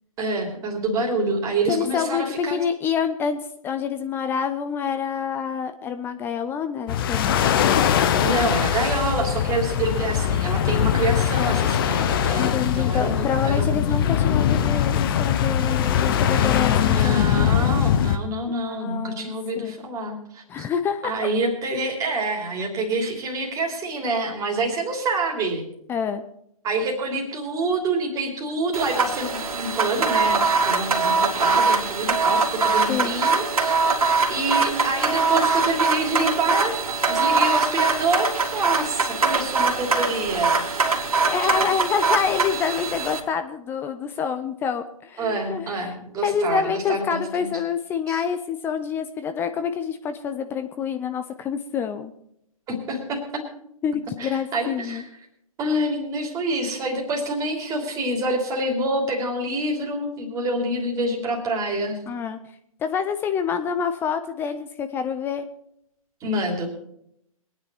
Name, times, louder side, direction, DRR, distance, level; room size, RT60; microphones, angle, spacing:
voice 1, 0.2-2.6 8.2-13.7 16.3-20.7 21.0-25.6 26.6-30.4 30.6-33.8 34.3-36.7 37.0-40.6 45.2-47.5 48.1-48.2 52.7-53.4 54.2-55.1 55.6-62.0 66.2-66.7, right 2 dB, 20° right, 1 dB, 3.1 m, -27 dB
voice 2, 1.6-7.4 12.3-17.2 18.5-19.8 20.5-21.3 25.9-26.2 32.9-33.2 41.3-45.9 46.2-52.1 53.8-55.0 62.1-62.4 62.8-65.5, left 7 dB, 10° left, 8 dB, 0.5 m, -27 dB
sound 1, 6.9-18.2, left 9 dB, 40° left, 1.0 m, -21 dB
sound 2, 28.7-43.2, right 4 dB, 70° right, 2.6 m, -22 dB
22.0 x 9.7 x 4.5 m, 0.74 s
figure-of-eight pair, 130°, 19 cm